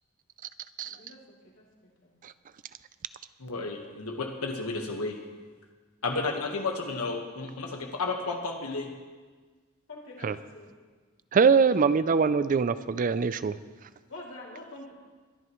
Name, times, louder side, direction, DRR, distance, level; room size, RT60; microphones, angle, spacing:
voice 1, 0.8-2.1 9.9-10.7 14.1-14.9, left 2 dB, 60° left, -3 dB, 2.9 m, -46 dB
voice 2, 3.4-5.2 6.0-8.9, left 3 dB, 85° left, 2 dB, 1.4 m, -32 dB
voice 3, 11.3-13.5, right 5 dB, 35° right, 14 dB, 0.3 m, -23 dB
22.5 x 11.0 x 3.1 m, 1.4 s
head